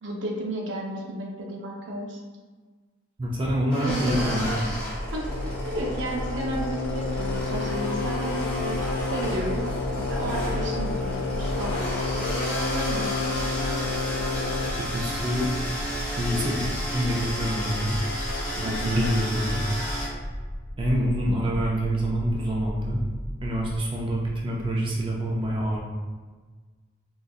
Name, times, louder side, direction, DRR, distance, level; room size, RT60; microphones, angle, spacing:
voice 1, 0.0-2.2 3.8-4.3 5.1-5.3 5.6-9.7 10.0-11.8 12.7-13.1 18.6-19.0, right 1 dB, 75° right, 0 dB, 0.6 m, -32 dB
voice 2, 3.2-4.6 14.8-15.5 16.2-18.1 18.6-19.6 20.8-23.0 23.4-25.8, equal, 25° right, -3 dB, 0.4 m, -26 dB
sound 1, 3.7-20.1, equal, 5° left, 1.1 m, -33 dB
sound 2, 3.8-23.8, equal, 35° left, 0.7 m, -35 dB
sound 3, 5.3-14.7, left 4 dB, 85° left, 0.3 m, -31 dB
3.9 x 2.6 x 2.3 m, 1.4 s
head